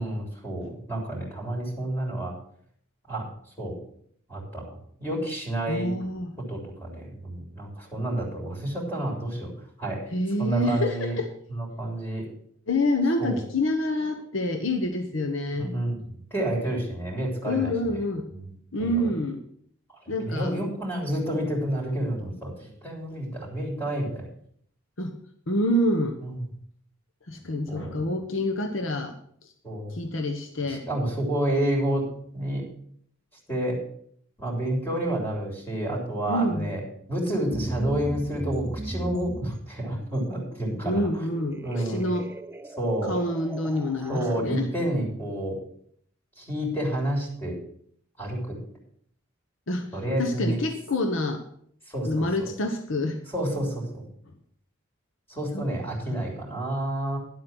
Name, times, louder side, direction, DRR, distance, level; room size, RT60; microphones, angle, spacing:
voice 1, 0.0-2.3 3.1-3.3 3.6-3.8 4.3-5.9 6.5-9.5 9.8-10.1 10.4-11.2 11.5-12.2 13.2-13.4 15.6-16.0 16.3-18.0 18.3-18.4 18.8-19.1 20.0-24.3 26.2-26.4 27.7-27.9 29.6-29.9 30.7-32.1 32.3-32.6 33.5-33.8 34.4-36.8 37.1-41.1 41.6-42.1 42.8-43.1 44.1-45.6 46.4-47.6 48.2-48.6 49.9-50.6 51.9-52.3 53.3-54.0 55.3-57.2, right 1 dB, 10° left, -1 dB, 3.5 m, -29 dB
voice 2, 5.7-6.4 10.1-11.3 12.7-15.7 17.5-18.3 18.7-19.4 20.1-20.5 21.3-21.6 25.0-25.1 25.5-26.2 27.3-29.1 29.4-29.5 29.9-30.9 36.3-36.7 40.8-42.3 43.0-44.7 49.7-51.4 52.0-53.2 55.5-55.7 56.1-56.3, left 1 dB, 70° left, 5 dB, 1.1 m, -27 dB
sound 1, 37.5-44.4, right 2 dB, 10° right, 0.3 m, -38 dB
10.5 x 7.9 x 6.1 m, 0.64 s
head